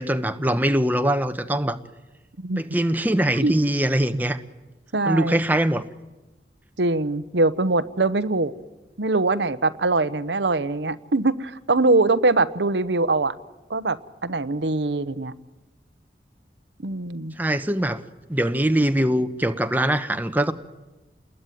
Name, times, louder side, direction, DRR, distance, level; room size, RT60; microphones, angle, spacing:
voice 1, 0.0-1.8 2.6-4.4 5.1-5.8 17.4-18.0 18.3-20.5, right 1 dB, 10° right, 8 dB, 1.0 m, -22 dB
voice 2, 4.9-5.4 6.8-8.5 9.0-13.3 13.7-15.3 16.8-17.3, right 3 dB, 85° right, 12 dB, 1.0 m, -22 dB
29.0 x 21.0 x 9.3 m, 1.1 s
head